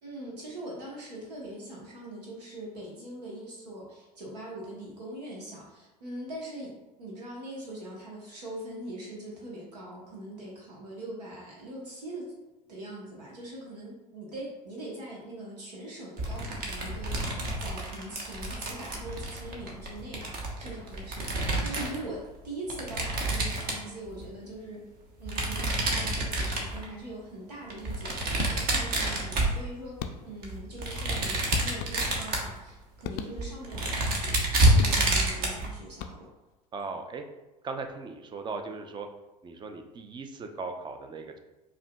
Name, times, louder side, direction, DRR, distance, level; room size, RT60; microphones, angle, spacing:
voice 1, 0.0-6.7 7.0-12.3 12.7-24.8 25.2-30.0 30.2-36.3, right 1 dB, 75° right, -4 dB, 0.9 m, -42 dB
sound 1, 16.2-22.0 22.7-24.2 25.2-26.9 27.7-30.0 30.4-32.6 33.0-33.1 33.4-35.7, right 1 dB, 45° right, 0.9 m, -28 dB
sound 2, 28.4-28.9 30.0-30.6 31.5-32.4 33.0-33.8 34.6-35.4 35.9-36.6, left 7 dB, 50° left, 0.4 m, -40 dB
voice 2, 36.7-37.2 37.6-39.1 39.4-41.4, right 4 dB, 20° right, 5 dB, 0.4 m, -38 dB
4.7 x 2.6 x 2.2 m, 1.1 s
figure-of-eight pair, 70°, 21 cm